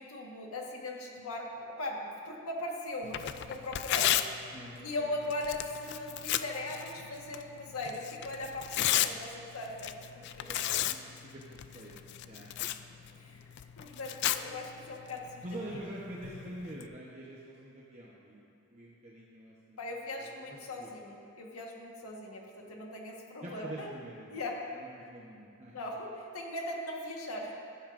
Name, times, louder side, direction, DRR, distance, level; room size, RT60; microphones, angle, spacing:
voice 1, 0.0-4.5 4.8-10.5 13.2-13.4 13.8-15.4 19.8-23.9 24.3-24.6 25.7-27.5, left 1 dB, 80° left, 0 dB, 1.4 m, -39 dB
Tearing, 3.0-16.9, left 11 dB, 50° left, 0.3 m, -36 dB
voice 2, 4.5-5.3 10.4-11.0 11.3-13.4 15.4-18.4 18.7-20.9 23.4-24.3 24.7-25.8, right 1 dB, 30° right, -5 dB, 1.0 m, -46 dB
15.5 x 11.0 x 2.6 m, 2.4 s
head